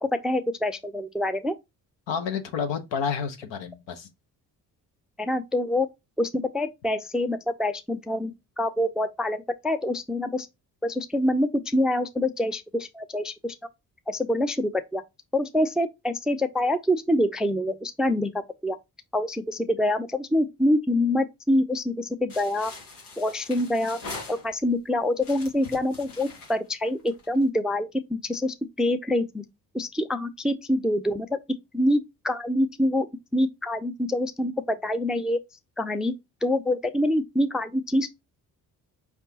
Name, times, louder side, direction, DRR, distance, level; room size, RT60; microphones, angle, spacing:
voice 1, 0.0-1.6 5.2-5.9 6.2-10.5 10.8-13.5 14.1-15.0 15.3-18.3 18.6-18.8 19.1-22.7 23.2-24.0 24.3-29.3 29.7-31.4 31.7-33.1 33.3-35.4 35.8-36.1 36.4-38.1, left 1 dB, ahead, 0.4 m, -25 dB
voice 2, 2.1-4.1, left 6 dB, 65° left, 1.0 m, -30 dB
sound 1, 22.3-24.8 25.2-27.4, left 3 dB, 85° left, 1.3 m, -42 dB
4.9 x 3.4 x 2.8 m
hypercardioid pair, 45°, 46 cm